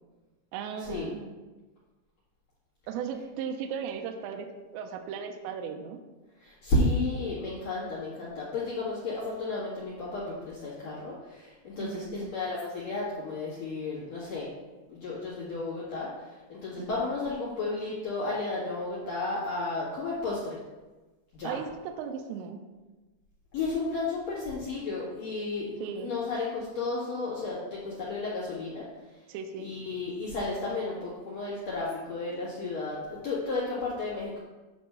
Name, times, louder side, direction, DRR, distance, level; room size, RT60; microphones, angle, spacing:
voice 1, 0.5-1.3 2.9-6.0 11.8-12.3 16.8-17.0 21.4-22.6 25.8-26.1 29.3-29.7, right 7 dB, 80° right, 4 dB, 2.7 m, -37 dB
voice 2, 6.4-14.5 14.9-16.1 16.5-20.4 21.3-21.6 23.5-28.9 29.6-34.4, left 3 dB, 60° left, -8 dB, 1.8 m, -32 dB
9.3 x 3.6 x 6.7 m, 1.2 s
omnidirectional pair, 5.8 m